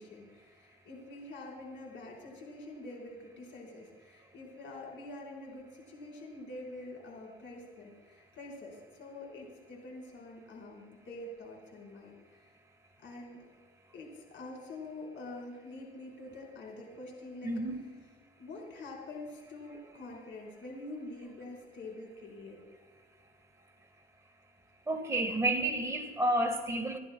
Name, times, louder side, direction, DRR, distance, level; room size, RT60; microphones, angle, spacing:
voice 1, 0.0-12.5 13.0-13.4 13.9-17.5 18.4-22.6, left 2 dB, 70° left, -1 dB, 4.3 m, -46 dB
voice 2, 17.4-17.8 24.9-27.0, right 1 dB, 15° right, 3 dB, 1.5 m, -30 dB
28.0 x 11.0 x 2.2 m, 1.5 s
cardioid pair, 90°, 20 cm